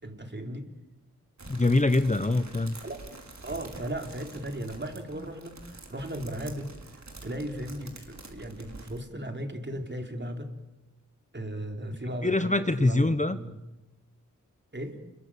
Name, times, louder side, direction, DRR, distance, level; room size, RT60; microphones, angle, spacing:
voice 1, 0.0-0.7 2.8-3.2 3.4-6.7 7.2-10.6 11.3-13.6 14.7-15.0, right 1 dB, 35° right, 4 dB, 4.2 m, -36 dB
sound 1, 1.4-9.0, right 2 dB, 60° right, 4.9 m, -46 dB
voice 2, 1.5-2.8 12.2-13.4, left 2 dB, 25° left, 11 dB, 1.1 m, -24 dB
30.0 x 22.0 x 8.8 m, 1.0 s
wide cardioid pair, 65°, 32 cm